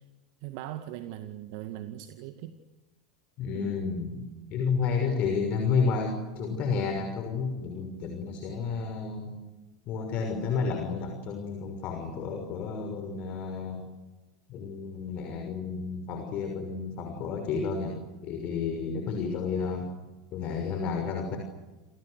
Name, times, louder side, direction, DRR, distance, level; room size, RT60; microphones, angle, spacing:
voice 1, 0.4-2.5 3.5-3.7, right 13 dB, 55° right, 9 dB, 2.0 m, -40 dB
voice 2, 3.4-4.2 4.5-9.4 9.9-13.9 14.5-19.9 20.3-21.4, left 5 dB, 45° left, 4 dB, 6.2 m, -31 dB
29.5 x 29.0 x 6.8 m, 1.1 s
figure-of-eight pair, 85°, 3 cm